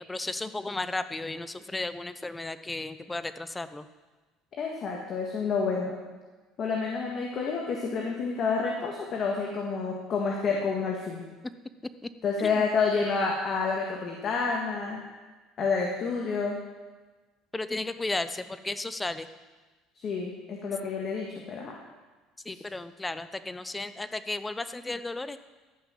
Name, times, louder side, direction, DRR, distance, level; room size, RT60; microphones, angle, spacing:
voice 1, 0.0-3.9 12.0-12.1 12.4-12.6 17.5-19.3 22.4-25.4, left 2 dB, 15° left, 12 dB, 0.7 m, -34 dB
voice 2, 4.5-6.0 6.6-11.3 12.2-15.0 15.6-16.6 20.0-21.7 22.5-22.6, left 4 dB, 45° left, 0 dB, 1.7 m, -29 dB
13.5 x 5.9 x 7.4 m, 1.3 s
supercardioid pair, 100°, 0 cm